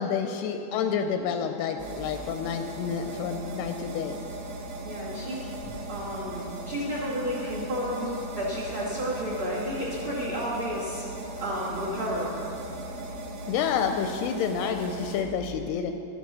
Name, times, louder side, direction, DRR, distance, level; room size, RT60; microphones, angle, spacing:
voice 1, 0.0-4.2 13.5-15.9, left 7 dB, 85° left, 6 dB, 2.4 m, -29 dB
sound 1, 1.8-15.2, right 2 dB, 85° right, 3.4 m, -38 dB
voice 2, 4.8-11.0 11.4-12.3, equal, 40° right, -6 dB, 2.1 m, -32 dB
12.5 x 9.7 x 6.2 m, 2.8 s
omnidirectional pair, 4.9 m